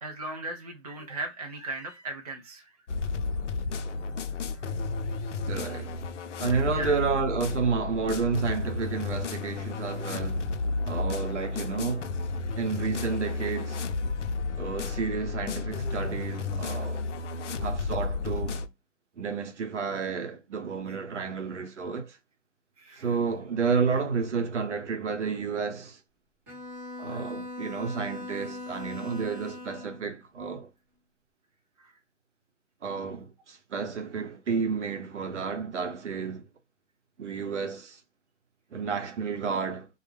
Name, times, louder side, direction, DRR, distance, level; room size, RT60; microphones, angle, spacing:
voice 1, 0.0-2.8 4.5-4.7 6.7-7.0 22.8-23.2 27.1-27.2 31.8-31.9, right 2 dB, 35° right, 0.4 m, -38 dB
sound 1, 2.9-18.7, left 4 dB, 70° left, 0.6 m, -32 dB
voice 2, 5.5-5.9 6.4-10.5 10.8-12.1 12.6-13.8 14.6-17.0 17.6-18.7 19.2-22.2 23.0-26.0 27.0-30.7 32.8-36.5 37.2-38.0 38.7-39.9, right 5 dB, 65° right, 0.9 m, -31 dB
Bowed string instrument, 26.5-30.1, left 2 dB, 15° right, 0.9 m, -40 dB
2.3 x 2.0 x 3.1 m
hypercardioid pair, 165°, 37 cm